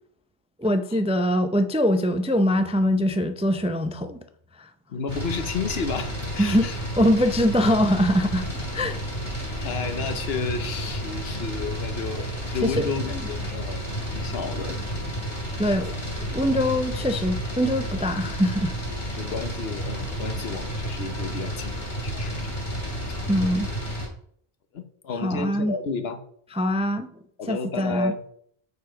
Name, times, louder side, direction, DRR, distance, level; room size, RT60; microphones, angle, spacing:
voice 1, 0.6-4.2 4.6-4.7 6.4-6.7 7.0-8.5 8.7-9.0 9.4-9.7 12.6-13.2 15.6-18.8 23.3-23.7 25.2-25.7 26.5-27.1 27.5-28.3, equal, 10° right, 0.3 m, -23 dB
voice 2, 4.9-6.8 9.6-13.8 14.2-14.8 19.1-21.8 22.0-22.4 23.1-23.2 24.7-26.2 27.4-28.2, left 5 dB, 80° left, 1.2 m, -32 dB
sound 1, 5.1-24.1, equal, 50° left, 2.7 m, -31 dB
6.9 x 6.8 x 5.1 m
omnidirectional pair, 1.0 m